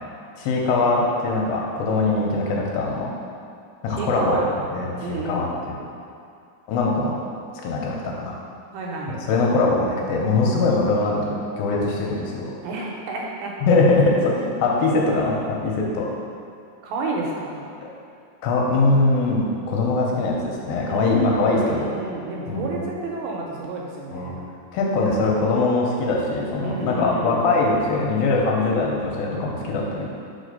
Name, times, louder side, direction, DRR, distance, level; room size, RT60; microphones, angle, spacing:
voice 1, 0.4-3.1 3.8-4.4 4.7-5.8 6.7-7.2 7.6-8.3 9.3-12.5 13.6-16.1 17.8-17.9 18.4-22.0 22.5-22.8 24.1-24.4 24.7-30.1, left 3 dB, 85° left, -2 dB, 2.5 m, -22 dB
voice 2, 3.9-4.5 5.0-5.6 8.7-9.2 12.6-13.8 16.8-17.7 20.9-24.4 26.6-27.5, right 3 dB, 85° right, -1 dB, 2.6 m, -30 dB
4.9 x 4.2 x 5.3 m, 2.5 s
omnidirectional pair, 4.2 m